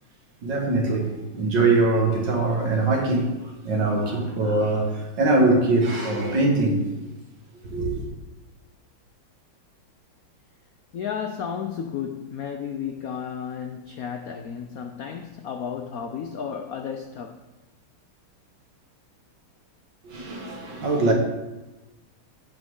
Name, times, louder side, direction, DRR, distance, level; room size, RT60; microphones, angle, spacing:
voice 1, 0.4-3.3 3.6-6.8 7.7-7.9 20.0-21.1, right 2 dB, 55° right, 2.3 m, -22 dB
voice 2, 10.9-17.4, left 7 dB, 85° left, 0.8 m, -33 dB
15.5 x 6.0 x 3.8 m
omnidirectional pair, 2.3 m